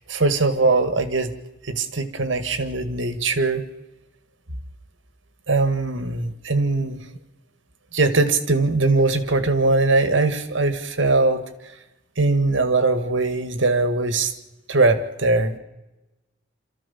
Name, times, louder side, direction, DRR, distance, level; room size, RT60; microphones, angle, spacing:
voice 1, 0.1-1.3 1.6-3.6 5.5-7.0 7.9-11.4 12.2-14.3 14.7-15.6, right 3 dB, 85° right, 10 dB, 1.7 m, -21 dB
27.5 x 14.0 x 7.0 m, 1.0 s
head